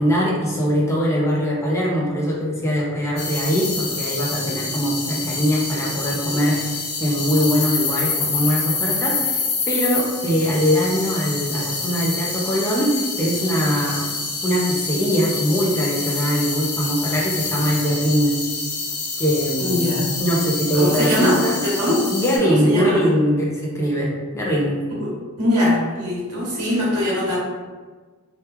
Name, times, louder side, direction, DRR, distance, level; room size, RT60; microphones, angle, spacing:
voice 1, 0.0-9.4 9.7-14.1 14.4-18.4 19.2-19.7 20.2-21.6 22.1-24.8, equal, 10° left, -4 dB, 0.5 m, -21 dB
sound 1, 3.2-22.4, left 4 dB, 85° left, 0.7 m, -27 dB
voice 2, 19.6-20.1 20.7-22.0 22.4-23.0 24.9-25.1 25.4-27.4, left 1 dB, 75° right, -7 dB, 1.2 m, -21 dB
2.9 x 2.2 x 3.4 m, 1.4 s
head